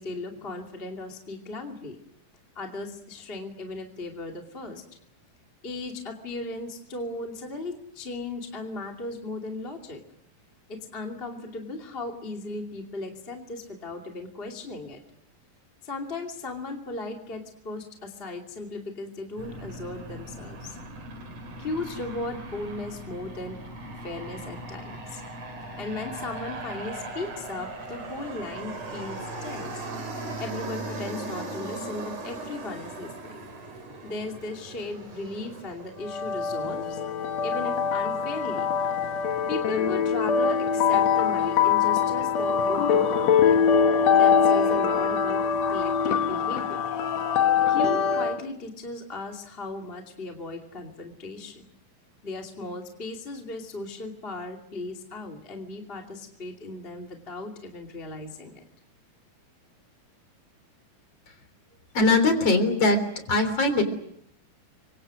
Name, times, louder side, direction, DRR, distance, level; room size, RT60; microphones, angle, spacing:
voice 1, 0.0-2.0 2.5-4.8 5.6-10.0 10.7-15.0 15.8-20.8 21.6-23.6 24.0-25.2 25.8-29.8 30.4-33.4 34.0-37.0 37.4-38.7 39.5-43.6 44.1-45.4 45.7-46.9 47.7-51.7 52.2-58.6, left 2 dB, 20° left, 2 dB, 2.3 m, -36 dB
Aircraft, 19.4-36.8, right 2 dB, 45° right, 4.6 m, -39 dB
sound 1, 36.0-48.4, left 7 dB, 60° left, 2.1 m, -23 dB
sound 2, 42.4-47.8, left 10 dB, 80° left, 3.7 m, -37 dB
voice 2, 61.9-63.0 63.3-63.8, left 2 dB, 45° left, 8 dB, 4.4 m, -21 dB
29.5 x 25.0 x 6.3 m, 0.74 s
omnidirectional pair, 4.1 m